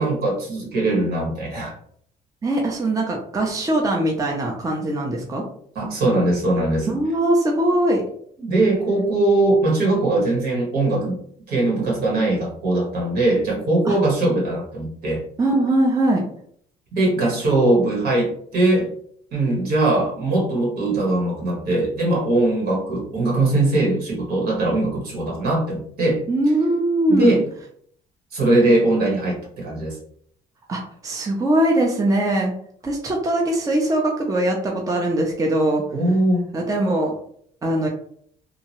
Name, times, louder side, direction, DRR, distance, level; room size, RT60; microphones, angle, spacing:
voice 1, 0.0-1.7 5.7-6.9 8.4-11.2 11.5-15.2 17.0-18.9 19.3-26.2 27.1-27.4 28.3-30.0 35.9-36.5, right 2 dB, 70° right, -2 dB, 1.3 m, -20 dB
voice 2, 2.4-5.4 6.9-8.0 13.9-14.0 15.4-16.2 26.3-27.4 30.7-32.5 32.8-35.8 36.5-37.1 37.6-37.9, right 1 dB, 20° right, 0 dB, 0.5 m, -21 dB
2.8 x 2.1 x 2.9 m, 0.62 s
cardioid pair, 110°, 17 cm